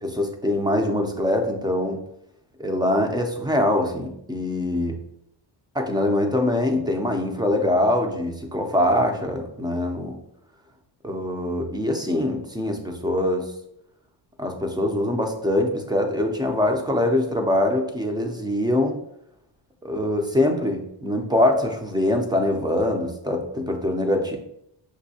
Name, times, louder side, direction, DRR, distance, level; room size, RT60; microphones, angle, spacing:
voice 1, 0.0-2.0 2.6-5.0 5.7-10.2 11.0-13.5 14.4-19.0 19.8-24.4, left 1 dB, 10° right, 3 dB, 0.5 m, -23 dB
6.1 x 2.7 x 2.7 m, 0.75 s
cardioid pair, 140°, 47 cm